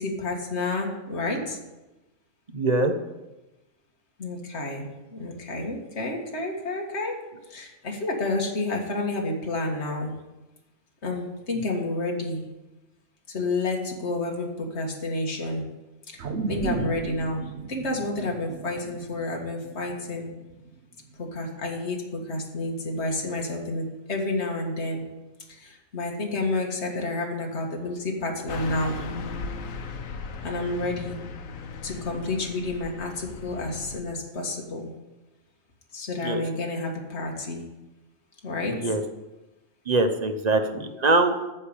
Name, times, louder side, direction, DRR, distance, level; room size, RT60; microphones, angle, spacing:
voice 1, 0.0-1.6 4.2-7.1 7.5-10.1 11.0-12.4 13.3-15.6 16.5-17.4 17.7-20.3 21.3-25.0 25.5-29.1 30.4-31.2 31.8-34.9 35.9-37.6 38.4-39.0, left 2 dB, 60° left, 0 dB, 2.1 m, -30 dB
voice 2, 2.5-2.9 36.2-36.4 38.7-39.0 39.9-41.4, right 2 dB, 35° right, 6 dB, 1.1 m, -23 dB
sound 1, 16.2-20.7 21.1-21.2, right 4 dB, 60° right, 1.2 m, -34 dB
Car passing by / Truck, 28.5-34.0, left 4 dB, 85° left, 1.3 m, -37 dB
9.7 x 6.6 x 8.9 m, 1.0 s
omnidirectional pair, 1.3 m